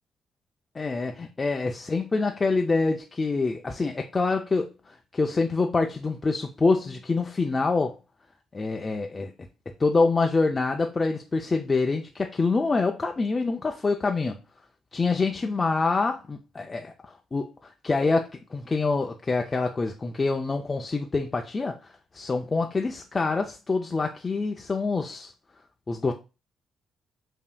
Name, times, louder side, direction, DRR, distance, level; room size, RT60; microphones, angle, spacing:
voice 1, 0.8-4.7 5.1-8.0 8.5-9.3 9.8-14.4 14.9-16.9 17.3-21.8 22.1-25.3 25.9-26.1, left 3 dB, 30° left, 0.4 m, -26 dB
5.4 x 2.7 x 2.2 m
cardioid pair, 90°, 0 cm